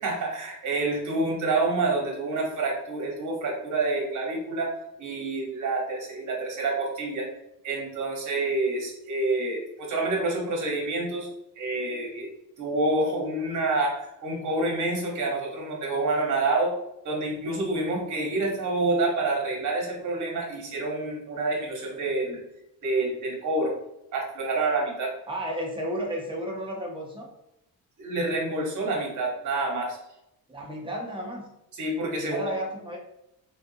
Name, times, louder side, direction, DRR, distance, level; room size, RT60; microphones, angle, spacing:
voice 1, 0.0-7.3 7.6-11.3 11.6-12.3 12.6-16.7 17.0-22.4 22.8-23.8 24.1-25.1 28.0-30.0 31.7-32.4, right 2 dB, 50° right, -1 dB, 1.1 m, -28 dB
voice 2, 25.3-27.3 30.5-31.5 32.2-33.0, equal, 15° right, -1 dB, 0.6 m, -33 dB
3.4 x 2.6 x 2.7 m, 0.82 s
cardioid pair, 155°, 38 cm